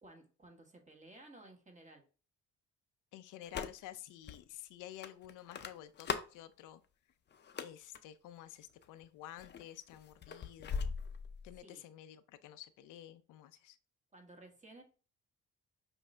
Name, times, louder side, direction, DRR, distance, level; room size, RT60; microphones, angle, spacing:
voice 1, 0.0-2.0 11.6-11.8 14.1-14.8, right 2 dB, 25° right, 2 dB, 1.4 m, -56 dB
voice 2, 3.1-6.8 7.6-10.9 11.4-13.8, left 12 dB, 90° left, 11 dB, 0.5 m, -51 dB
sound 1, 3.4-4.0 4.3-4.4 5.0-6.4 7.3-8.0 8.7-9.1 9.4-11.6, left 6 dB, 35° left, 0.5 m, -40 dB
5.6 x 2.6 x 3.2 m, 0.36 s
cardioid pair, 90°, 30 cm